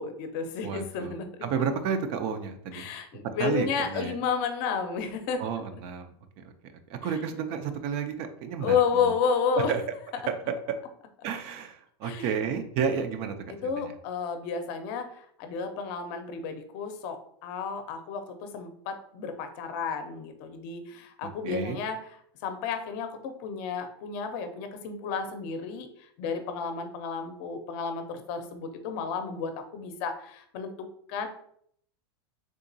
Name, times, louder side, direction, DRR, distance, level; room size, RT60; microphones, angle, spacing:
voice 1, 0.0-1.3 2.7-5.4 7.0-7.2 8.6-9.7 12.0-12.3 13.6-22.0 22.4-31.3, left 6 dB, 50° left, 7 dB, 0.6 m, -32 dB
voice 2, 0.6-1.1 1.4-2.9 3.4-4.2 5.4-6.5 6.9-8.8 9.0-9.1 9.6-9.8 10.3-10.5 11.2-13.4 13.6-13.9 21.4-21.8, right 6 dB, 45° right, 8 dB, 0.4 m, -31 dB
3.6 x 2.9 x 2.6 m, 0.65 s
supercardioid pair, 140°, 14 cm